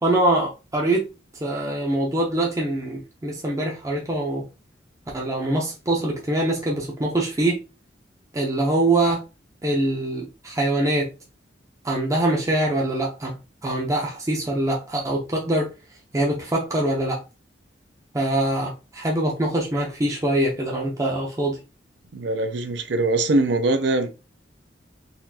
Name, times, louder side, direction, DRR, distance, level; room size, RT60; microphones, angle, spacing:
voice 1, 0.0-4.5 5.1-7.6 8.3-9.2 9.6-11.1 11.8-15.7 16.1-17.2 18.1-21.6, right 1 dB, 20° right, 0.6 m, -24 dB
voice 2, 22.1-24.1, right 2 dB, 70° right, 0.6 m, -22 dB
4.0 x 2.5 x 2.7 m
head